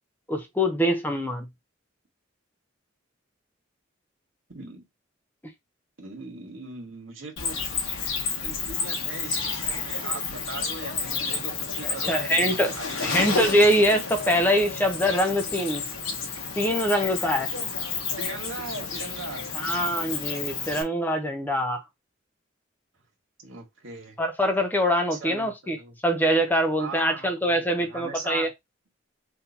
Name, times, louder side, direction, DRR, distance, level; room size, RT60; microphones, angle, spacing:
voice 1, 0.3-1.5 11.8-12.7 13.0-15.9 16.6-17.5 19.5-21.8 24.2-28.5, equal, 10° left, 0.6 m, -24 dB
voice 2, 4.5-4.9 6.0-7.7 8.4-13.2 18.2-19.5 23.4-24.2 25.1-26.0 26.8-28.5, right 3 dB, 80° right, 1.8 m, -39 dB
Cricket, 7.4-20.8, left 5 dB, 85° left, 1.1 m, -31 dB
5.8 x 2.7 x 2.8 m
head